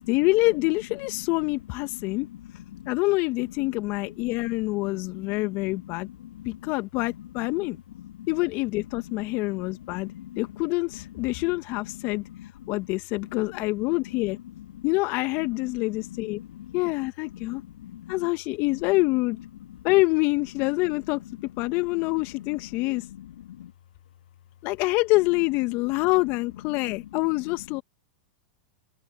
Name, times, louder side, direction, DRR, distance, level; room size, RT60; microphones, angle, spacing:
voice 1, 0.0-2.3 2.9-6.1 6.4-7.8 8.3-10.1 10.4-12.2 12.7-14.4 14.8-16.4 16.7-17.6 18.1-19.4 19.8-21.2 21.6-23.0 24.6-27.8, left 23 dB, 45° left, 1.6 m, -26 dB
voice 2, 1.9-3.0 3.6-4.3 4.7-6.7 7.1-8.3 9.1-10.4 11.2-11.4 11.9-12.7 13.2-14.0 14.5-14.9 15.5-16.9 17.3-18.3 18.7-18.8 19.7-19.8 20.8-21.0 21.3-22.0 22.4-23.7 26.7-27.2 27.4-27.8, left 12 dB, 70° left, 2.5 m, -44 dB
hypercardioid pair, 100°, 5 cm